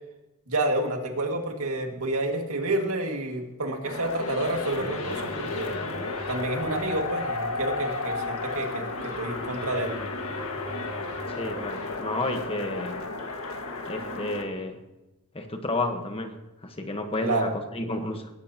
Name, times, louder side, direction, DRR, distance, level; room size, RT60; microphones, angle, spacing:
voice 1, 0.5-5.7 6.3-10.0 17.2-17.5, right 2 dB, 80° right, 3 dB, 2.0 m, -29 dB
sound 1, 3.8-14.4, left 3 dB, 75° left, 1.7 m, -33 dB
voice 2, 11.4-13.0 13.9-14.8 15.3-16.4 16.6-18.3, left 2 dB, 25° left, 5 dB, 1.2 m, -31 dB
18.5 x 16.0 x 2.9 m, 1.0 s
head